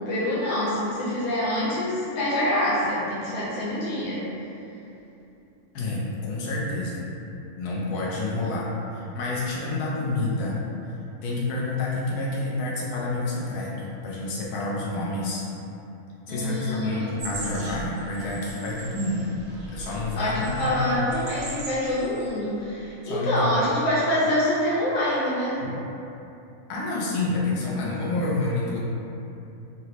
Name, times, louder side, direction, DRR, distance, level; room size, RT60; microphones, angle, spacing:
voice 1, 0.0-4.3 16.3-17.1 20.2-25.6, left 1 dB, 45° left, -9 dB, 0.8 m, -26 dB
voice 2, 5.7-7.0 7.6-10.6 11.2-15.5 16.3-19.4 19.7-21.1 23.0-23.7 25.6-25.8 26.7-28.8, left 2 dB, 85° left, -5 dB, 1.2 m, -28 dB
sound 1, 17.2-22.3 22.6-22.8, right 2 dB, 80° right, 1.2 m, -39 dB
4.1 x 2.0 x 2.8 m, 2.9 s
omnidirectional pair, 1.6 m